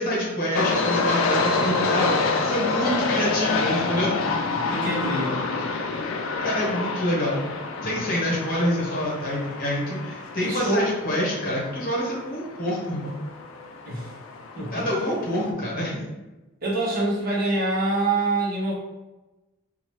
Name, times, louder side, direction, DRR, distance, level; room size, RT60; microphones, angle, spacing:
voice 1, 0.0-4.2 6.4-7.4 7.8-13.1 14.7-16.0, equal, 45° left, -4 dB, 0.8 m, -26 dB
sound 1, 0.5-15.5, left 3 dB, 70° left, 0.4 m, -28 dB
voice 2, 4.7-5.4 10.4-10.9 13.8-14.1 14.6-14.9 16.6-18.7, right 2 dB, 45° right, -6 dB, 1.0 m, -25 dB
2.9 x 2.3 x 3.1 m, 1.1 s
head